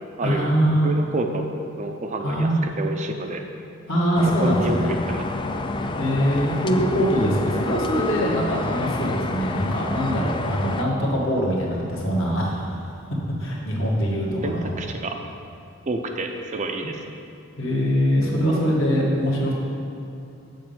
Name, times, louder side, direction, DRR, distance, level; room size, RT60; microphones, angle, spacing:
voice 1, 0.2-0.9 2.2-2.6 3.9-4.9 6.0-12.8 13.4-14.7 17.6-19.5, equal, 60° left, -4 dB, 1.9 m, -22 dB
voice 2, 0.8-1.4 1.8-2.5 2.8-3.4 4.4-5.2 14.4-15.1 15.9-17.2, right 2 dB, 35° right, 4 dB, 0.5 m, -29 dB
sound 1, 4.1-10.8, left 3 dB, 20° left, 0.3 m, -29 dB
7.5 x 5.3 x 7.3 m, 2.7 s
head